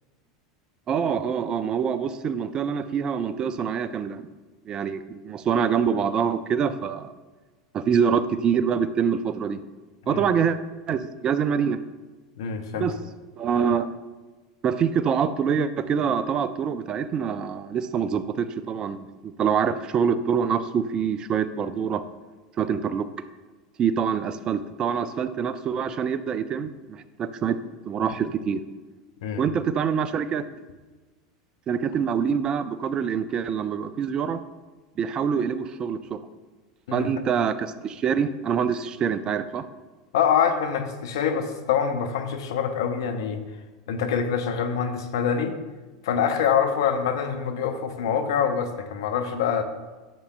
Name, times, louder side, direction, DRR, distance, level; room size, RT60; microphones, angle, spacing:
voice 1, 0.9-4.3 4.7-7.1 7.7-9.6 10.1-10.6 10.9-11.8 12.8-12.9 13.4-13.9 14.6-22.0 22.6-23.1 23.8-27.6 27.9-28.6 29.4-30.4 31.7-34.4 35.0-36.2 36.9-39.7, right 7 dB, 35° right, 13 dB, 0.5 m, -25 dB
voice 2, 12.4-12.9 29.2-29.4 36.9-37.1 40.1-43.4 43.9-45.6 46.0-49.6, left 7 dB, 65° left, 6 dB, 0.9 m, -25 dB
12.0 x 7.1 x 2.3 m, 1.2 s
hypercardioid pair, 85°, 2 cm